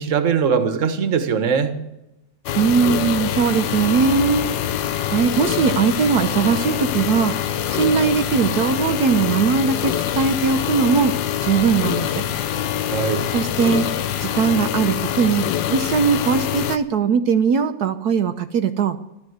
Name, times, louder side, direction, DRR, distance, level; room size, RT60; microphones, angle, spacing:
voice 1, 0.0-1.8 12.9-13.3, right 6 dB, 45° right, 10 dB, 1.5 m, -21 dB
sound 1, 2.5-16.8, left 10 dB, 90° left, 1.5 m, -24 dB
voice 2, 2.5-4.5 5.1-12.2 13.3-19.0, right 6 dB, 65° right, 9 dB, 1.2 m, -20 dB
14.5 x 12.0 x 7.9 m, 0.92 s
omnidirectional pair, 1.9 m